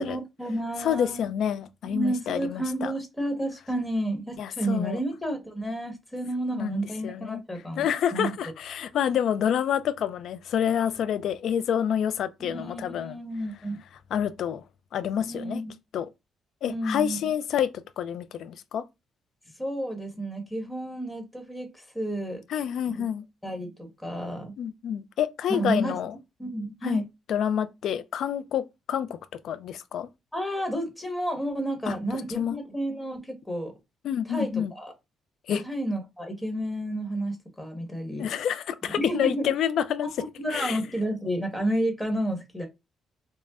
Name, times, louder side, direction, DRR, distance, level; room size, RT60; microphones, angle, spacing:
voice 1, 0.0-1.2 1.8-8.3 12.4-13.8 15.2-15.6 16.7-17.2 19.6-22.4 22.9-23.0 23.4-24.5 25.5-26.0 26.4-27.0 30.3-33.7 34.3-34.9 35.5-38.3 39.0-39.5 40.2-42.7, right 1 dB, 5° left, 1.3 m, -31 dB
voice 2, 0.8-2.9 4.4-5.0 6.5-7.4 7.8-13.2 14.1-14.6 14.9-15.6 15.9-16.1 16.6-17.7 18.0-18.8 22.5-23.3 24.6-26.1 26.8-27.0 27.3-29.1 29.4-30.1 31.9-32.6 34.0-34.7 35.5-35.6 38.2-40.1 40.5-40.8, left 9 dB, 70° left, 0.4 m, -28 dB
5.2 x 2.1 x 2.4 m
cardioid pair, 90°, 0 cm